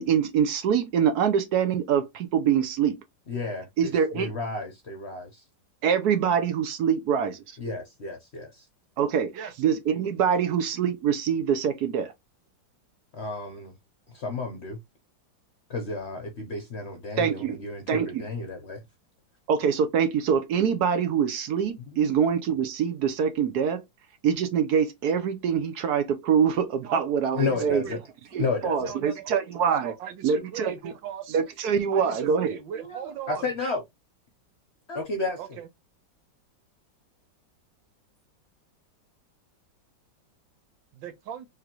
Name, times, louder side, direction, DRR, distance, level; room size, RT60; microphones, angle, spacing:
voice 1, 0.0-3.0 3.8-4.3 5.8-7.4 9.0-12.1 17.2-17.6 17.9-18.2 19.5-23.8 24.2-27.8 28.3-29.9 30.2-30.9 31.3-32.6, right 7 dB, 65° right, 1.1 m, -24 dB
voice 2, 3.3-5.4 7.6-8.6 13.1-13.7 14.1-14.8 15.7-18.8 27.3-28.0 28.4-28.9 32.8-33.8 34.9-35.6, left 3 dB, 50° left, 0.8 m, -32 dB
voice 3, 27.3-28.0 28.8-29.3 29.8-31.4 31.9-33.5 35.4-35.7 40.9-41.5, right 9 dB, 85° right, 1.6 m, -38 dB
3.9 x 3.3 x 2.9 m
omnidirectional pair, 2.0 m